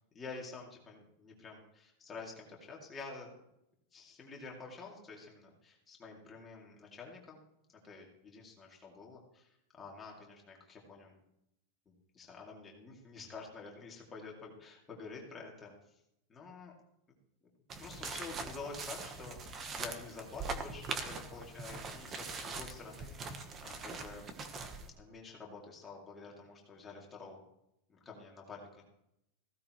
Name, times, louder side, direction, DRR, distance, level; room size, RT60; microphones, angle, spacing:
voice 1, 0.2-3.3 3.9-7.4 7.8-11.2 11.9-15.7 16.3-16.7 17.8-24.3 25.0-27.4 27.9-28.8, left 4 dB, 15° left, -2 dB, 2.5 m, -49 dB
sound 1, 17.7-24.9, right 4 dB, 20° right, 1.1 m, -42 dB
16.0 x 14.5 x 3.1 m, 0.81 s
supercardioid pair, 180°, 0 cm